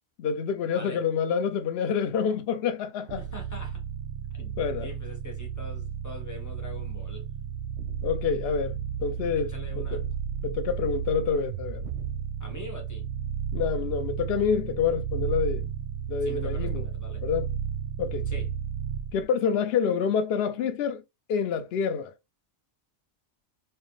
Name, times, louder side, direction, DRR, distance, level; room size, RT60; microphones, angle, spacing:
voice 1, 0.2-3.2 4.6-5.0 8.0-8.7 9.0-10.1 10.4-11.8 13.5-15.7 16.1-16.9 17.2-17.5 18.0-18.3 19.1-21.0 21.3-22.1, left 6 dB, 60° left, 0.7 m, -27 dB
sound 1, 3.1-19.2, right 8 dB, 65° right, 0.8 m, -33 dB
voice 2, 3.2-3.8 4.4-7.2 9.4-10.0 12.4-13.0 16.3-17.2 18.3-18.5, left 2 dB, 15° left, 0.9 m, -43 dB
4.4 x 2.1 x 3.1 m
omnidirectional pair, 1.4 m